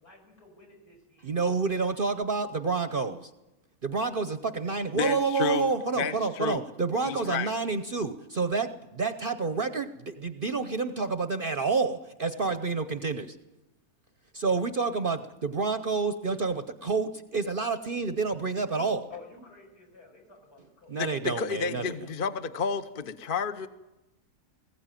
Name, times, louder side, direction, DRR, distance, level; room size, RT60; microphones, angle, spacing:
voice 1, 0.0-1.4 19.1-21.1, left 4 dB, 80° left, 0 dB, 6.3 m, -51 dB
voice 2, 1.2-3.3 3.8-13.4 14.3-19.1 20.9-22.0, right 4 dB, 45° right, 10 dB, 0.8 m, -29 dB
voice 3, 4.9-6.6 7.0-7.5 21.0-23.7, left 6 dB, 40° left, 11 dB, 0.9 m, -31 dB
20.5 x 16.0 x 9.1 m, 1.0 s
omnidirectional pair, 1.6 m